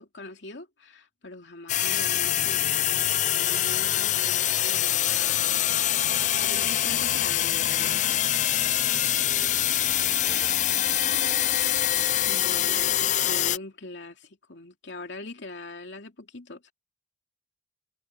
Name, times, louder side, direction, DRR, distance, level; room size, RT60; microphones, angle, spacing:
voice 1, 0.0-5.8 6.4-8.2 12.3-16.7, left 2 dB, 80° left, 2.7 m, -42 dB
sound 1, 1.7-13.6, left 12 dB, 40° left, 0.5 m, -24 dB
voice 2, 8.8-9.7, equal, 5° left, 4.8 m, -54 dB
head